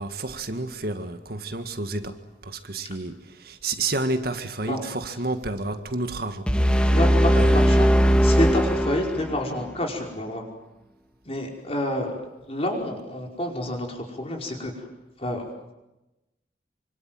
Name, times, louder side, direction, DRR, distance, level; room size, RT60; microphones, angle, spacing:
voice 1, 0.0-7.0 7.3-7.7, right 2 dB, 60° right, 1.9 m, -30 dB
sound 1, 6.5-9.5, equal, 5° left, 1.4 m, -19 dB
voice 2, 6.9-10.5 11.3-12.2 12.5-14.7 15.2-15.4, left 1 dB, 35° left, 5.2 m, -28 dB
26.5 x 25.5 x 7.8 m
head